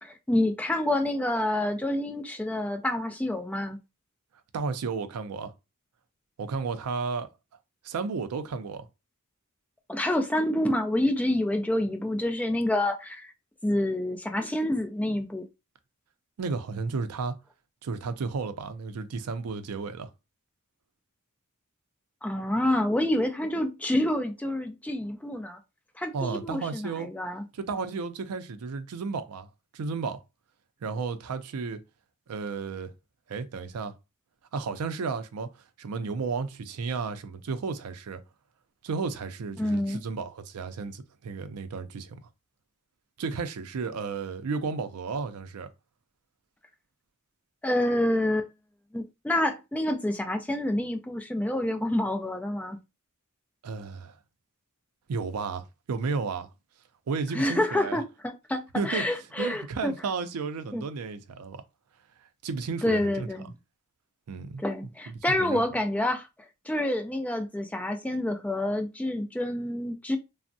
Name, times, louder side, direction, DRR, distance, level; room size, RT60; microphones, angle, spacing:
voice 1, 0.0-3.8 9.9-13.3 13.6-15.5 22.2-25.6 26.0-27.4 39.6-40.0 47.6-48.5 48.9-52.8 57.3-59.9 60.7-60.8 62.8-63.5 64.6-66.3 66.7-70.2, left 1 dB, 5° left, 0.3 m, -28 dB
voice 2, 4.5-5.5 6.4-7.3 7.8-8.9 16.4-17.4 17.8-20.1 26.1-27.1 27.5-29.5 29.7-30.2 30.8-31.8 32.3-32.9 33.3-34.0 34.5-35.5 35.8-38.2 38.8-42.2 43.2-45.7 53.6-54.2 55.1-56.5 57.1-58.0 58.8-59.1 59.4-61.6 62.4-63.3 64.3-64.6 65.1-65.6, right 4 dB, 85° right, 0.4 m, -33 dB
3.3 x 2.0 x 2.6 m
head